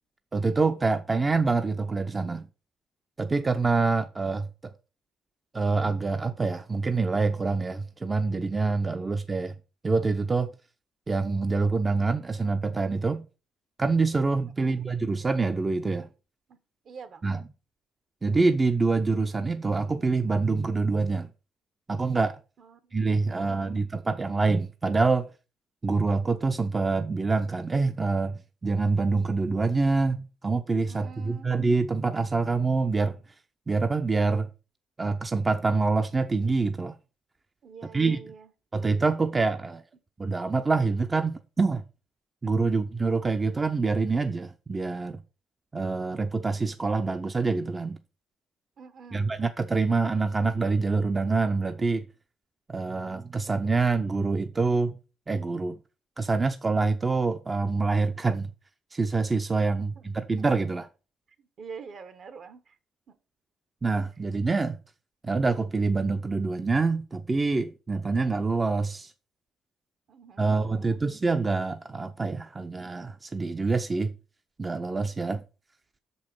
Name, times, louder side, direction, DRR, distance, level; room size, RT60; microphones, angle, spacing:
voice 1, 0.3-2.5 3.2-4.5 5.5-9.5 9.8-10.5 11.1-13.2 13.8-16.1 17.2-17.4 18.2-21.3 21.9-22.4 22.9-25.3 25.8-28.3 28.6-33.2 33.7-34.5 35.0-37.0 37.9-38.2 38.7-39.8 40.2-41.8 42.4-45.2 45.7-48.0 49.1-52.0 52.7-55.0 55.3-55.8 56.2-58.5 58.9-60.9 63.8-64.8 65.2-69.1 70.4-74.1 74.6-75.4, right 3 dB, 25° right, 0.6 m, -26 dB
voice 2, 14.4-14.8 16.5-16.6 16.8-17.3 22.6-23.8 30.9-31.5 37.6-38.5 42.6-42.7 48.8-49.3 59.8-60.1 61.4-62.8 63.1-63.2 70.1-71.0, right 5 dB, 60° right, 1.3 m, -47 dB
6.4 x 5.5 x 6.0 m
cardioid pair, 90°, 0 cm